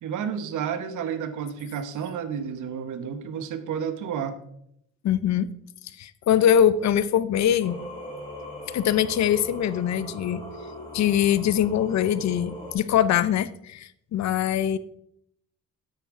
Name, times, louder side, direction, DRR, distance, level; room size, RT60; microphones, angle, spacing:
voice 1, 0.0-4.4, right 7 dB, 80° right, 10 dB, 1.0 m, -31 dB
voice 2, 5.0-5.5 6.0-7.8 8.7-10.4 10.9-14.8, left 10 dB, 65° left, 16 dB, 0.6 m, -22 dB
Singing, 7.6-12.7, equal, 15° left, 4.1 m, -39 dB
9.0 x 8.5 x 3.7 m, 0.74 s
cardioid pair, 90°, 30 cm